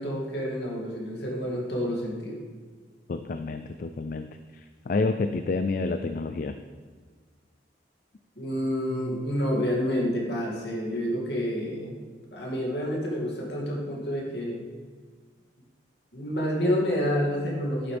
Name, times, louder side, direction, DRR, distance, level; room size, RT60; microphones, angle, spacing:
voice 1, 0.0-2.4 8.4-11.9 12.3-14.7 16.1-18.0, equal, 65° left, -2 dB, 2.4 m, -28 dB
voice 2, 3.1-4.3 4.5-6.6, left 3 dB, 45° left, 8 dB, 0.4 m, -29 dB
11.0 x 9.1 x 3.4 m, 1.5 s
head